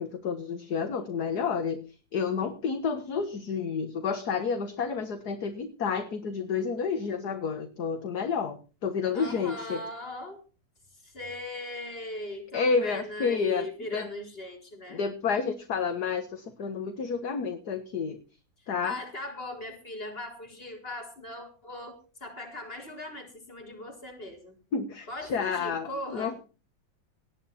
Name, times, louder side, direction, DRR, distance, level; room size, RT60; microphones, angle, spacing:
voice 1, 0.0-1.8 2.1-9.8 12.5-13.7 13.9-14.1 14.9-18.2 18.7-19.0 24.7-26.4, left 5 dB, 55° left, 8 dB, 2.0 m, -30 dB
voice 2, 9.1-10.4 11.0-15.0 18.6-24.5 25.1-26.4, left 1 dB, 30° left, 2 dB, 4.5 m, -39 dB
18.5 x 11.0 x 4.2 m, 0.35 s
omnidirectional pair, 2.1 m